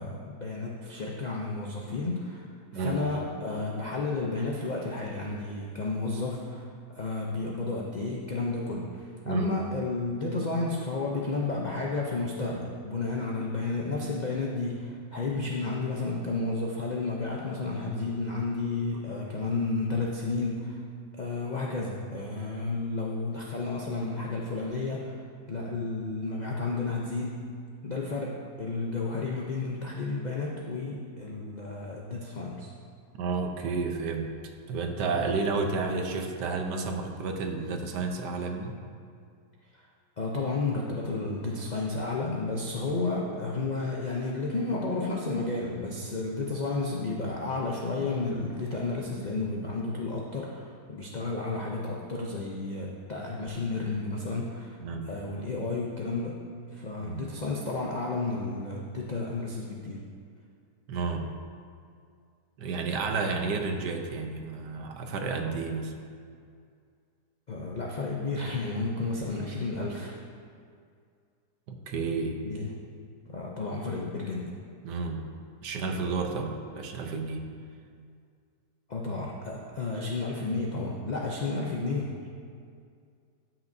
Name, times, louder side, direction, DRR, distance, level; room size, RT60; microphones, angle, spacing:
voice 1, 0.0-2.5 2.7-20.8 21.1-25.2 25.5-27.6 27.8-32.7 40.2-54.8 55.0-60.0 67.5-70.1 72.4-72.7 73.3-74.5 78.9-82.3, left 3 dB, 80° left, -2 dB, 0.4 m, -32 dB
voice 2, 33.2-34.3 34.7-38.7 54.8-55.1 57.0-57.2 60.9-61.3 62.6-65.9 71.7-72.4 74.8-75.2 75.6-77.4, right 4 dB, 85° right, 4 dB, 1.4 m, -31 dB
13.0 x 6.0 x 2.6 m, 2.2 s
omnidirectional pair, 1.8 m